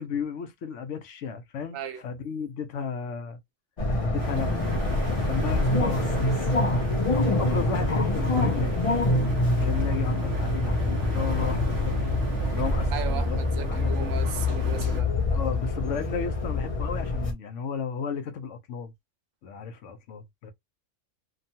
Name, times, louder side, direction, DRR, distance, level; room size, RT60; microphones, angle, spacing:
voice 1, 0.0-1.8 2.0-3.4 4.0-4.7 5.1-6.8 7.1-8.8 9.5-12.1 12.5-14.1 15.3-18.9 19.4-20.5, left 6 dB, 70° left, 1.0 m, -34 dB
voice 2, 1.7-2.0 12.9-15.4, right 9 dB, 85° right, 1.0 m, -36 dB
sound 1, 3.8-17.3, left 2 dB, 40° left, 0.5 m, -25 dB
sound 2, 4.2-15.0, right 2 dB, 60° right, 1.1 m, -38 dB
2.9 x 2.3 x 2.7 m
omnidirectional pair, 1.3 m